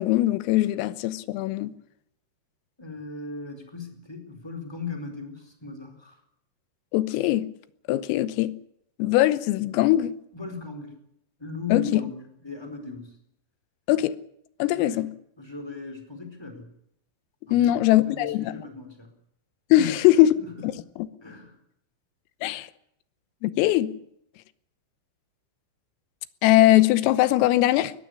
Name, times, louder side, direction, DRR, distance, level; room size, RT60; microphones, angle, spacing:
voice 1, 0.0-1.7 6.9-7.5 7.9-8.6 9.0-10.2 11.7-12.0 13.9-14.1 14.6-15.1 17.5-18.6 19.7-20.3 20.6-21.1 22.4-22.7 23.4-24.0 26.4-27.9, left 15 dB, 85° left, 3.7 m, -21 dB
voice 2, 2.8-6.2 10.3-11.0 11.4-13.1 14.7-15.0 15.4-16.7 17.5-19.1 19.8-20.0 20.4-20.7 21.2-21.6, left 4 dB, 5° left, 3.6 m, -37 dB
21.0 x 15.0 x 10.0 m
omnidirectional pair, 5.8 m